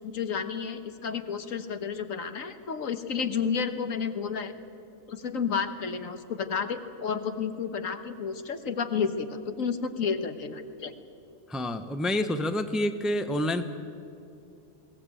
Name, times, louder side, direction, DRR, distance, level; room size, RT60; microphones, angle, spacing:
voice 1, 0.0-4.5 5.1-10.9, left 6 dB, 75° left, 9 dB, 1.6 m, -31 dB
voice 2, 11.5-13.6, left 1 dB, ahead, 9 dB, 0.8 m, -28 dB
21.5 x 18.0 x 9.1 m, 2.6 s
omnidirectional pair, 1.4 m